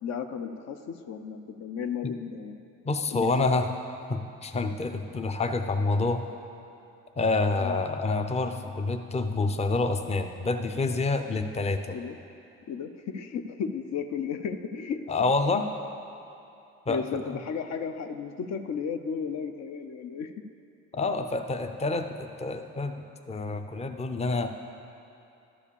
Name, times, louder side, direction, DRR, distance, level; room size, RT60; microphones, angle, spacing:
voice 1, 0.0-2.6 3.1-3.5 7.6-7.8 11.9-12.2 12.7-15.0 16.9-20.3, left 6 dB, 60° left, 8 dB, 0.6 m, -34 dB
voice 2, 2.9-3.7 4.1-6.3 7.2-12.0 15.1-15.6 16.9-17.0 20.9-24.5, left 3 dB, 20° left, 7 dB, 0.6 m, -27 dB
12.0 x 5.0 x 6.9 m, 2.7 s
cardioid pair, 90°, 30 cm